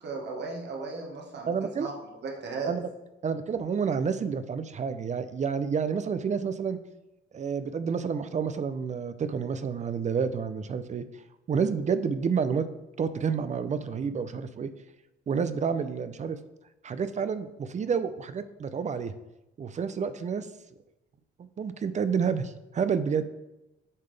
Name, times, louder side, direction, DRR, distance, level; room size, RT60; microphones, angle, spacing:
voice 1, 0.0-1.9 2.2-2.7, right 4 dB, 60° right, 0 dB, 1.4 m, -36 dB
voice 2, 1.5-1.9 2.7-2.9 3.2-6.8 7.3-11.0 11.5-12.7 13.0-14.7 15.3-16.4 16.8-19.1 19.6-20.5 21.4-23.2, right 6 dB, 35° right, 12 dB, 0.5 m, -29 dB
9.6 x 3.7 x 3.3 m, 0.96 s
cardioid pair, 90°, 20 cm